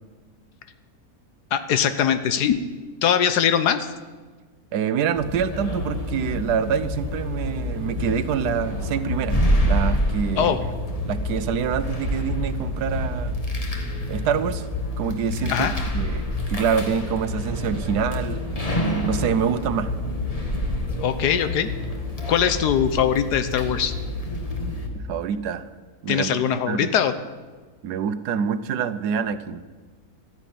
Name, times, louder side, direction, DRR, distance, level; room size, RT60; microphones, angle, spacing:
voice 1, 1.5-2.6 3.0-3.9 10.4-10.6 15.5-15.7 21.0-21.7 22.3-23.9 26.1-27.1, left 8 dB, 90° left, 11 dB, 1.5 m, -21 dB
voice 2, 4.7-10.6 11.1-13.4 14.1-14.7 15.0-18.4 19.0-19.9 24.9-25.7 26.0-26.9 27.8-29.6, right 7 dB, 85° right, 13 dB, 1.4 m, -26 dB
sound 1, 5.2-24.9, left 1 dB, 25° left, 1.7 m, -27 dB
13.0 x 11.0 x 9.2 m, 1.4 s
omnidirectional pair, 1.7 m